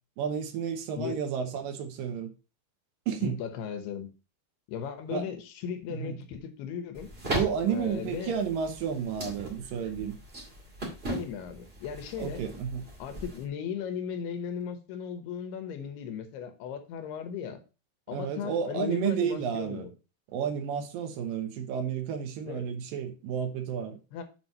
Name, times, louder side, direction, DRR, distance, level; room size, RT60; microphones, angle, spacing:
voice 1, 0.2-2.3 3.1-3.4 5.1-5.3 5.9-6.2 7.3-10.2 12.2-12.9 18.1-19.9 20.3-24.0, right 7 dB, 70° right, 2.5 m, -31 dB
voice 2, 3.2-4.1 4.7-7.1 7.7-8.4 11.1-12.4 13.0-17.6 18.1-19.9 22.5-22.7 24.1-24.2, left 7 dB, 85° left, 3.0 m, -36 dB
sound 1, 6.9-13.5, right 1 dB, 25° right, 1.4 m, -38 dB
7.3 x 4.6 x 5.4 m
omnidirectional pair, 4.5 m